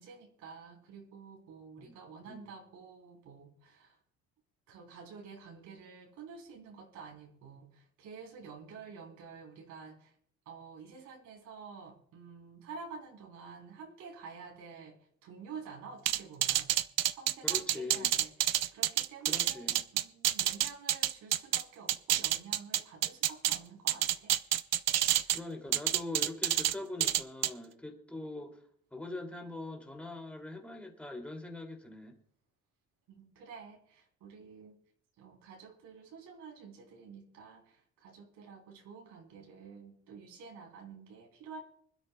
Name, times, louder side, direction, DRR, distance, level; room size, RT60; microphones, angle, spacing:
voice 1, 0.0-4.0 4.7-10.1 10.5-16.7 17.1-24.3 25.1-25.4 33.1-34.8 35.2-41.6, right 5 dB, 85° right, 3.5 m, -50 dB
sound 1, 16.1-21.6 21.9-23.6 23.9-25.4 25.7-26.7 27.0-27.5, right 12 dB, 60° right, 0.7 m, -28 dB
voice 2, 17.4-18.1 19.3-19.8 25.3-28.6 28.9-32.2, left 2 dB, 5° left, 2.7 m, -42 dB
25.5 x 12.5 x 2.3 m
cardioid pair, 120°, 29 cm